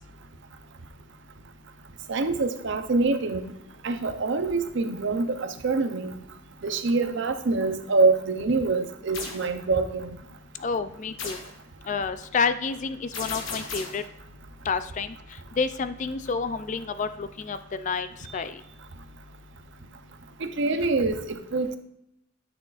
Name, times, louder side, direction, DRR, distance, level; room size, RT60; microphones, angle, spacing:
voice 1, 2.1-3.5 3.8-6.1 6.6-10.1 20.4-21.8, right 3 dB, 60° right, 0.6 m, -25 dB
sound 1, 9.1-9.5 11.2-11.6 13.1-14.1, left 4 dB, 70° left, 1.4 m, -35 dB
voice 2, 10.6-11.4 11.9-14.0 14.7-15.1 15.6-18.1 18.3-18.6, left 5 dB, 35° left, 0.3 m, -29 dB
9.6 x 6.3 x 2.4 m
head